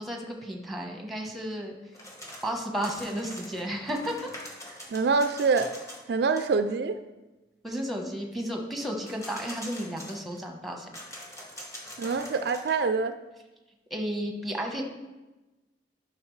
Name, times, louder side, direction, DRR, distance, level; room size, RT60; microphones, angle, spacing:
voice 1, 0.0-1.8 2.4-4.3 4.7-4.8 7.6-10.9 13.9-14.8, equal, ahead, 2 dB, 1.0 m, -33 dB
sound 1, 1.9-2.6 2.8-6.1 6.4-6.5 9.0-10.4 10.9-12.8, left 1 dB, 15° left, 1.2 m, -44 dB
voice 2, 4.9-5.7 6.1-7.0 12.0-13.2, right 4 dB, 65° right, 9 dB, 0.4 m, -25 dB
11.5 x 5.7 x 3.2 m, 1.1 s
head